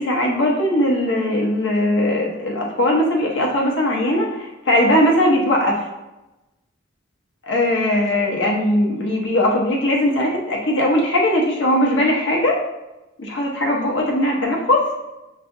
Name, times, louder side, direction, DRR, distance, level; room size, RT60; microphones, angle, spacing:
voice 1, 0.0-5.8 7.5-12.6 13.2-14.9, left 1 dB, 70° left, -1 dB, 1.0 m, -19 dB
5.8 x 3.2 x 2.6 m, 1.0 s
head